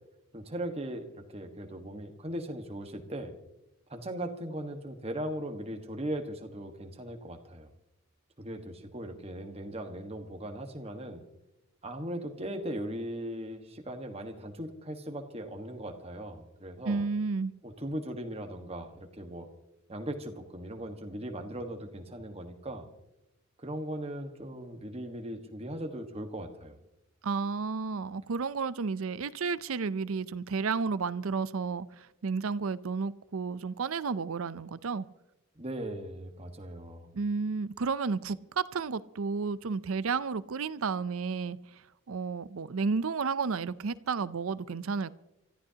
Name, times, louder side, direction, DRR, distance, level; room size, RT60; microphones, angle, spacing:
voice 1, 0.3-3.3 3.9-7.7 8.4-11.2 11.8-17.1 17.6-19.5 19.9-22.9 23.6-26.8 35.6-37.1, right 1 dB, 30° right, 1.4 m, -38 dB
voice 2, 16.9-17.5 27.2-35.1 37.1-41.6 42.1-45.2, right 5 dB, 75° right, 0.5 m, -32 dB
29.0 x 14.0 x 2.9 m
head